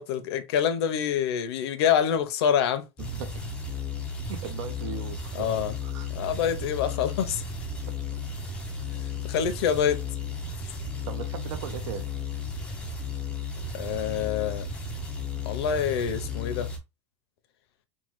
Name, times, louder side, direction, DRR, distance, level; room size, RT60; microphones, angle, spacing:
voice 1, 0.0-2.9 5.3-5.7 6.1-7.4 8.9-10.0 10.6-10.7 13.7-14.7 15.5-16.7, left 8 dB, 60° left, 0.5 m, -26 dB
sound 1, 3.0-16.8, left 3 dB, 5° left, 0.3 m, -34 dB
voice 2, 3.0-3.5 4.3-5.5 5.8-6.1 11.1-12.1, right 8 dB, 80° right, 0.5 m, -38 dB
3.1 x 2.1 x 3.0 m
supercardioid pair, 180°, 15 cm